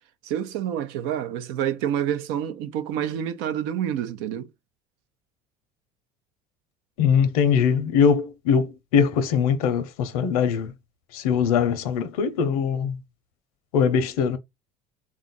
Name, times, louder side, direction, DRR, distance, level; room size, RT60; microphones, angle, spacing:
voice 1, 0.2-4.5, right 10 dB, 75° right, 0.7 m, -28 dB
voice 2, 7.0-10.7 11.1-13.0 13.7-14.4, left 7 dB, 85° left, 0.7 m, -22 dB
3.6 x 2.5 x 3.9 m
supercardioid pair, 85°, 18 cm